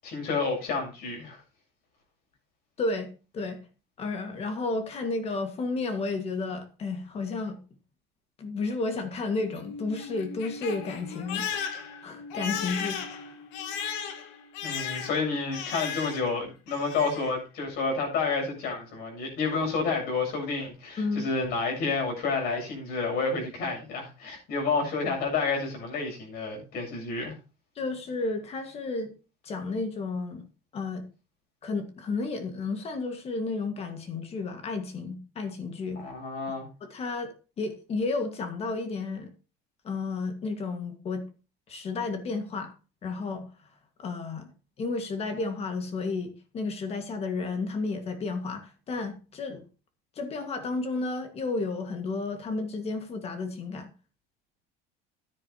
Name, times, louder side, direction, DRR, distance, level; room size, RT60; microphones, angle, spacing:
voice 1, 0.0-1.4 14.6-27.3 35.9-36.7, left 4 dB, 60° left, 7.4 m, -30 dB
voice 2, 2.8-3.6 4.0-7.6 8.4-11.5 12.0-13.3 21.0-21.2 27.8-29.1 29.4-30.5 30.7-31.0 31.6-36.1 36.8-39.3 39.8-41.2 41.7-42.7 43.0-43.5 44.0-44.5 44.8-49.6 50.2-53.9, left 3 dB, 35° left, 1.7 m, -32 dB
Crying sobbing, 9.4-16.4 16.7-17.3, left 7 dB, 80° left, 2.1 m, -36 dB
14.5 x 10.0 x 2.9 m
cardioid pair, 155°, 19 cm